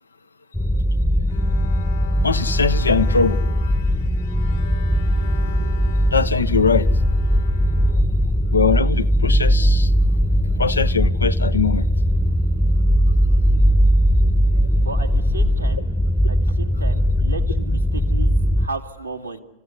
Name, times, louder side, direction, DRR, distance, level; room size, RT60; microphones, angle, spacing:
sound 1, 0.5-18.7, equal, 5° left, 1.0 m, -19 dB
Bowed string instrument, 1.3-8.7, left 9 dB, 60° left, 1.3 m, -41 dB
voice 1, 2.2-3.4 6.1-6.9 8.5-9.9 10.6-11.9, left 5 dB, 75° left, 0.8 m, -21 dB
voice 2, 14.7-15.8 16.3-19.4, right 3 dB, 85° right, 2.0 m, -34 dB
27.5 x 15.5 x 8.2 m
figure-of-eight pair, 90°, 0 cm